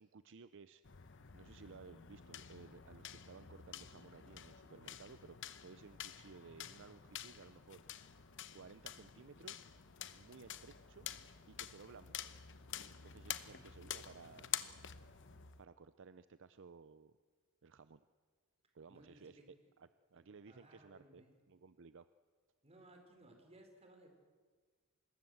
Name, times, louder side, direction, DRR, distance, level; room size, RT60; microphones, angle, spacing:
voice 1, 0.0-7.8 8.5-9.6 10.1-11.1 11.5-12.3 12.9-14.5 15.6-17.2 17.6-18.0 18.7-22.1, right 5 dB, 60° right, 13 dB, 0.6 m, -57 dB
sound 1, 0.8-15.6, left 10 dB, 60° left, 1.0 m, -49 dB
sound 2, 1.0-15.6, equal, ahead, 2.8 m, -74 dB
voice 2, 13.5-14.0 18.6-19.5 20.1-21.4 22.6-24.2, right 1 dB, 30° right, 4 dB, 4.5 m, -62 dB
25.5 x 20.5 x 7.8 m, 1.5 s
head